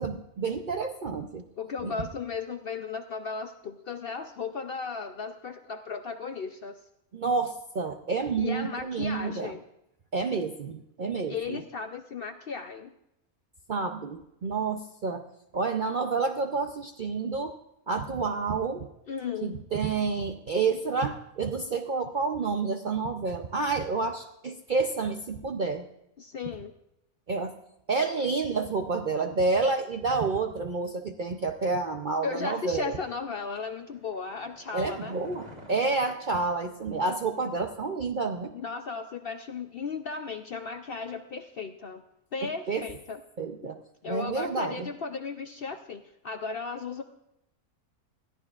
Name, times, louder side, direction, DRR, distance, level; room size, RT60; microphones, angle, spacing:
voice 1, 0.0-1.4 1.8-1.9 7.1-9.5 10.1-11.6 13.7-15.2 15.5-17.5 17.9-18.9 19.4-25.9 27.3-27.5 27.9-33.0 34.7-38.5 42.4-42.8 43.4-43.8 44.1-44.9, right 4 dB, 55° right, 5 dB, 0.5 m, -29 dB
voice 2, 1.6-6.8 8.4-9.6 11.3-12.9 19.1-19.6 26.2-26.7 32.2-35.2 38.5-42.0 42.3-43.2 44.0-47.0, left 5 dB, 60° left, 7 dB, 0.6 m, -35 dB
sound 1, 33.5-37.3 37.5-37.6, equal, 25° right, 3.0 m, -51 dB
20.5 x 14.0 x 2.4 m, 0.83 s
omnidirectional pair, 1.5 m